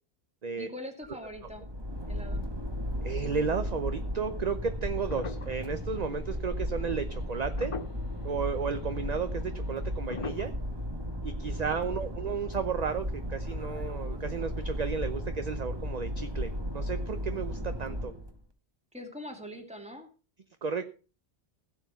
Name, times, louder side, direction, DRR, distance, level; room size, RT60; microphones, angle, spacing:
voice 1, 0.6-1.6 2.1-2.4 11.6-12.3 18.9-20.1, equal, 5° right, 3 dB, 2.5 m, -43 dB
sound 1, 1.0-18.3, equal, 25° right, 1.6 m, -35 dB
voice 2, 3.0-7.7 8.2-10.5 11.2-18.1 20.6-20.8, right 5 dB, 40° right, 9 dB, 0.9 m, -33 dB
sound 2, 5.1-6.4 7.2-7.3 7.6-8.2 9.0-9.1 10.1-10.5, left 5 dB, 35° left, 0.6 m, -40 dB
16.0 x 7.2 x 5.7 m, 0.37 s
omnidirectional pair, 1.1 m